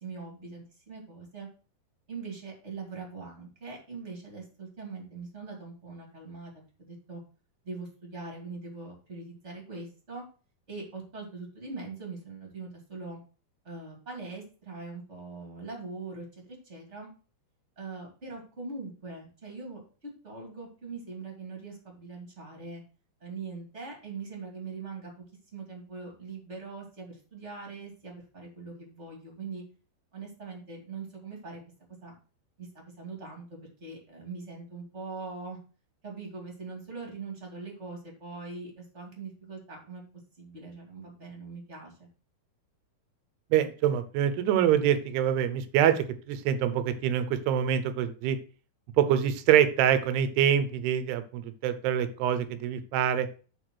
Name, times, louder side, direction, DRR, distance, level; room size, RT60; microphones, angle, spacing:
voice 1, 0.0-1.5 2.1-6.5 6.8-7.2 7.6-10.2 10.7-13.2 13.6-17.1 17.8-22.8 23.2-25.2 25.5-29.6 30.1-31.6 32.0-32.1 32.6-35.6 36.0-40.0 40.4-42.1, right 4 dB, 20° right, 0 dB, 2.1 m, -42 dB
voice 2, 43.5-48.4 49.0-53.3, right 9 dB, 85° right, 11 dB, 2.9 m, -25 dB
8.0 x 4.6 x 6.2 m, 0.37 s
omnidirectional pair, 4.6 m